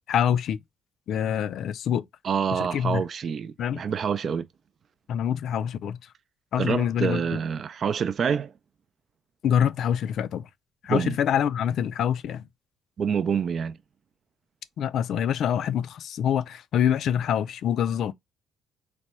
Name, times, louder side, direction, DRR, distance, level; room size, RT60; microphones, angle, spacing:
voice 1, 0.1-0.6 1.1-2.0 2.5-3.0 3.6-3.8 5.1-6.0 6.5-7.2 9.4-10.5 10.8-12.4 14.8-18.1, left 9 dB, 65° left, 0.3 m, -25 dB
voice 2, 2.2-4.5 6.6-8.5 10.9-11.2 13.0-13.8, right 7 dB, 50° right, 0.4 m, -27 dB
3.3 x 2.1 x 4.0 m
supercardioid pair, 80°, 0 cm